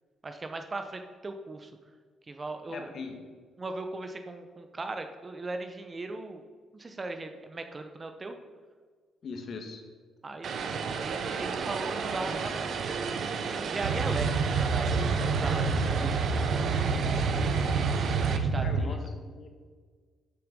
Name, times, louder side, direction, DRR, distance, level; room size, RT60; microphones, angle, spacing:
voice 1, 0.2-1.7 2.3-2.9 3.6-6.4 6.7-8.4 10.2-13.3 13.6-16.6 18.3-18.9, right 2 dB, 30° right, 6 dB, 0.8 m, -38 dB
voice 2, 2.7-3.3 9.2-9.8 18.6-19.5, left 4 dB, 55° left, 5 dB, 1.4 m, -40 dB
Vehicle, 10.4-18.4, right 5 dB, 60° right, 0.8 m, -33 dB
Boat Water vehicle, 13.8-18.8, right 4 dB, 90° right, 0.7 m, -28 dB
7.7 x 7.1 x 5.3 m, 1.5 s
cardioid pair, 90°, 0 cm